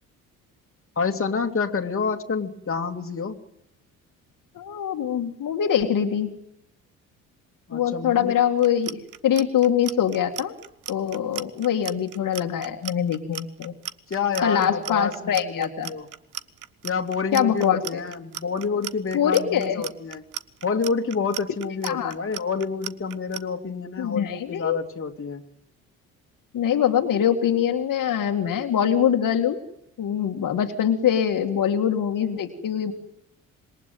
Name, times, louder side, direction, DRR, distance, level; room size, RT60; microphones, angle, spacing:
voice 1, 1.0-3.4 7.7-8.4 14.1-16.1 16.8-20.2 20.6-25.4, left 5 dB, 30° left, 4 dB, 2.5 m, -28 dB
voice 2, 4.6-6.3 7.7-10.6 10.9-13.7 14.4-15.9 17.3-18.0 19.1-19.8 21.8-22.1 24.0-24.8 26.5-29.6 30.0-32.9, left 9 dB, 50° left, 4 dB, 2.2 m, -23 dB
Clock, 8.6-23.4, right 10 dB, 45° right, 1.2 m, -36 dB
26.5 x 22.0 x 9.4 m, 0.80 s
figure-of-eight pair, 50°, 42 cm